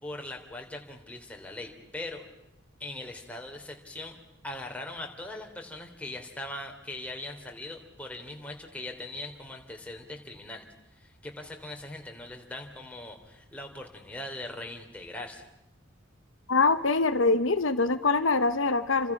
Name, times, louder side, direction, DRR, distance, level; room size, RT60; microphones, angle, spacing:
voice 1, 0.0-2.2 2.8-4.1 4.4-10.7 10.9-15.5, left 2 dB, 5° left, 2 dB, 3.2 m, -40 dB
voice 2, 16.5-19.1, left 3 dB, 75° left, 10 dB, 1.0 m, -24 dB
30.0 x 26.0 x 6.0 m, 0.92 s
head